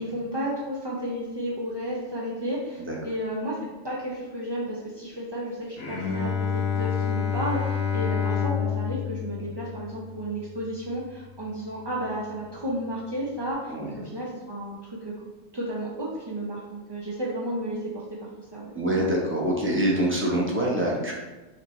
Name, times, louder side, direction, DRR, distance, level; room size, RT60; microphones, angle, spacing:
voice 1, 0.0-3.6 3.8-15.1 15.5-18.0 18.4-18.7, equal, 35° right, -6 dB, 0.4 m, -32 dB
Bowed string instrument, 5.8-11.0, left 7 dB, 65° left, 1.0 m, -29 dB
voice 2, 18.7-21.1, right 1 dB, 10° right, -3 dB, 0.7 m, -25 dB
6.0 x 2.9 x 3.1 m, 1.2 s
omnidirectional pair, 1.3 m